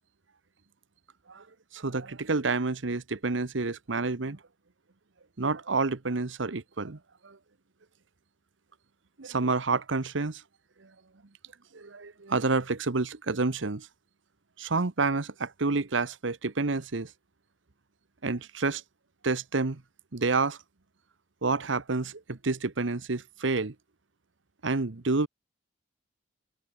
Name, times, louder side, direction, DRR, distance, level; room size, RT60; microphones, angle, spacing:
voice 1, 1.7-4.4 5.4-7.0 7.2-7.4 9.2-10.4 10.8-10.9 11.7-13.9 14.6-17.1 18.2-18.8 19.2-19.8 20.1-20.6 21.4-23.7 24.6-25.3, right 3 dB, 80° right, 1.1 m, -29 dB
head